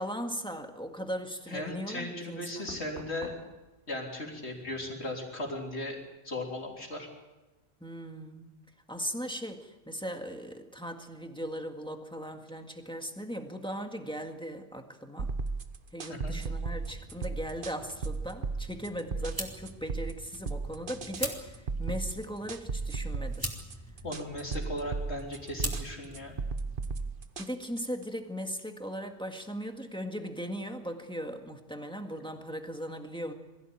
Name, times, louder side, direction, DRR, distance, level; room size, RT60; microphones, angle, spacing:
voice 1, 0.0-2.7 7.8-8.5 8.9-15.3 15.9-23.5 27.4-33.3, equal, 5° left, 4 dB, 1.8 m, -38 dB
voice 2, 1.5-3.3 3.9-6.0 6.2-7.1 16.1-16.4 24.0-26.3, left 1 dB, 85° left, 0 dB, 3.9 m, -37 dB
Knock, 2.7-6.2 6.4-6.8, equal, 70° right, 4.4 m, -52 dB
sound 1, 15.2-28.0, right 4 dB, 55° right, 1.2 m, -36 dB
sound 2, 16.7-27.1, right 1 dB, 20° right, 3.0 m, -43 dB
22.5 x 15.5 x 8.9 m, 1.1 s
omnidirectional pair, 1.1 m